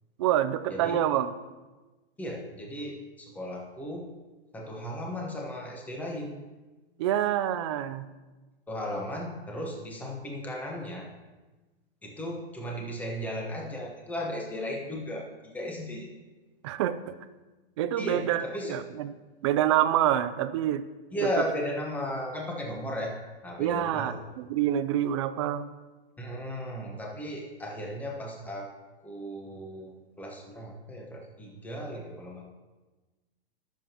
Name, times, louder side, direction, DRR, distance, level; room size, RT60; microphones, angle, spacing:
voice 1, 0.2-1.3 7.0-8.1 16.6-17.1 17.8-18.4 18.7-19.1 19.4-20.8 23.6-25.7, right 11 dB, 30° right, 12 dB, 0.4 m, -26 dB
voice 2, 2.2-4.1 4.5-6.5 8.7-11.1 12.0-16.1 18.0-18.8 21.1-24.2 26.2-28.7 29.0-32.4, equal, 5° left, 0 dB, 1.2 m, -35 dB
20.5 x 7.3 x 3.0 m, 1.2 s
hypercardioid pair, 155°, 31 cm